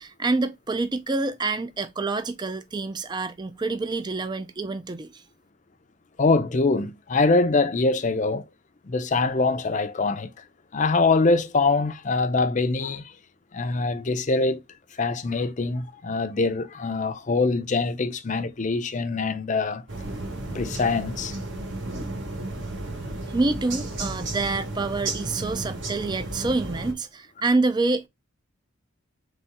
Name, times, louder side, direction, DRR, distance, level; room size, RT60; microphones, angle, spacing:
voice 1, 0.0-5.2 23.3-28.1, right 3 dB, 20° right, 0.4 m, -27 dB
voice 2, 6.2-8.5 8.8-10.3 10.7-13.1 13.5-14.6 15.0-19.8 20.5-21.3, left 3 dB, 40° left, 0.5 m, -23 dB
sound 1, 19.9-26.9, right 2 dB, 60° right, 1.5 m, -33 dB
4.2 x 3.4 x 3.5 m
head